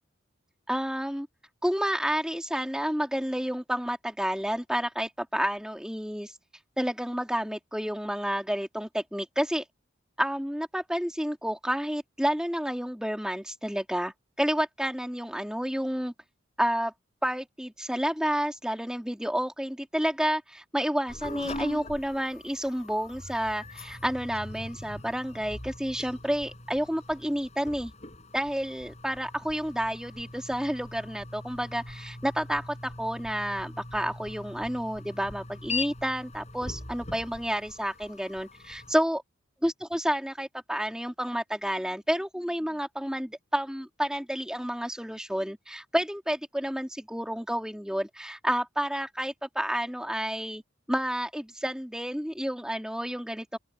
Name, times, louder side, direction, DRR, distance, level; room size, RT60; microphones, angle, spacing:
voice 1, 0.7-1.3 1.6-6.3 6.8-9.6 10.2-16.1 16.6-16.9 17.2-27.9 28.3-39.2 39.6-50.6 50.9-53.6, equal, 5° right, 3.0 m, -30 dB
sound 1, 21.1-38.9, left 2 dB, 35° left, 6.1 m, -41 dB
open air
head